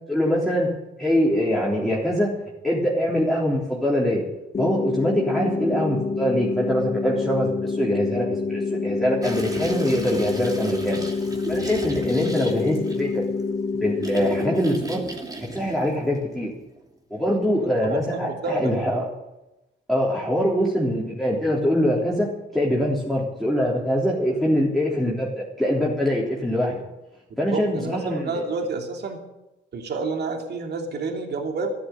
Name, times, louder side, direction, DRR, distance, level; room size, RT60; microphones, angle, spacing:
voice 1, 0.1-0.7 1.0-2.3 2.6-4.2 4.6-11.0 11.5-13.2 13.7-15.0 15.5-16.5 17.1-19.0 19.9-25.3 25.6-26.8 27.4-28.4, equal, ahead, -5 dB, 3.5 m, -23 dB
sound 1, 4.5-14.6, left 4 dB, 35° left, 1.4 m, -27 dB
sound 2, 9.2-16.8, right 2 dB, 20° right, 2.9 m, -37 dB
voice 2, 17.9-18.7 27.5-29.2 29.7-31.7, right 3 dB, 55° right, 3 dB, 3.1 m, -29 dB
13.0 x 11.5 x 9.3 m, 0.96 s
cardioid pair, 90°, 20 cm